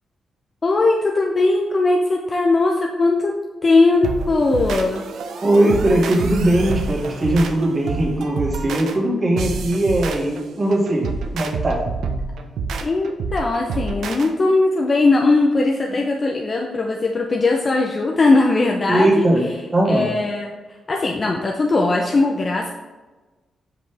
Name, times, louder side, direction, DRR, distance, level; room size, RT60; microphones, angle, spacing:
voice 1, 0.6-3.3 3.6-5.0 12.8-19.5 19.8-20.5 20.9-22.7, left 3 dB, 40° left, 1 dB, 0.7 m, -19 dB
sound 1, 4.0-14.3, right 4 dB, 80° right, 0.7 m, -28 dB
voice 2, 5.4-11.9 18.9-19.4 19.7-20.0, right 1 dB, 30° right, -3 dB, 2.2 m, -19 dB
7.9 x 5.4 x 3.4 m, 1.2 s
cardioid pair, 85°, 0 cm